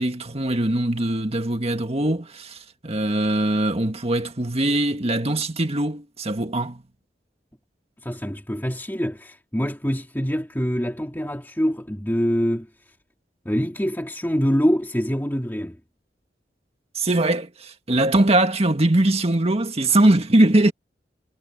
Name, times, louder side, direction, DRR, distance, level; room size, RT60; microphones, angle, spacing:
voice 1, 0.0-6.8 17.0-20.7, right 1 dB, 35° right, 1.8 m, -21 dB
voice 2, 8.0-12.7 13.5-15.8, equal, 10° left, 2.2 m, -25 dB
head